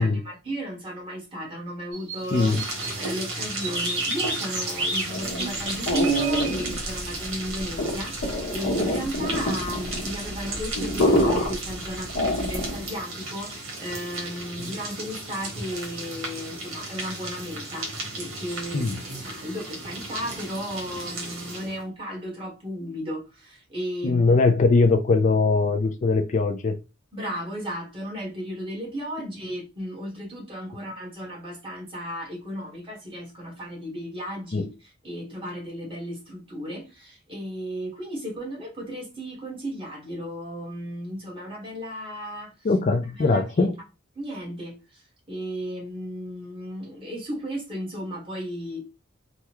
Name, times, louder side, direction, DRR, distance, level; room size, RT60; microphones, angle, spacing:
voice 1, 0.0-24.3 27.1-42.7 43.2-43.7 44.1-48.8, equal, 25° right, 1.2 m, -34 dB
sound 1, 1.9-3.2 3.5-6.5, right 1 dB, 60° right, 1.7 m, -31 dB
sound 2, 2.2-21.8, right 2 dB, 80° right, 1.3 m, -35 dB
voice 2, 2.3-2.6 18.7-19.0 24.0-26.7 34.5-34.7 42.6-43.7, left 3 dB, 35° left, 0.4 m, -21 dB
sound 3, 5.1-12.9, equal, 80° left, 1.0 m, -27 dB
3.5 x 2.1 x 2.9 m
head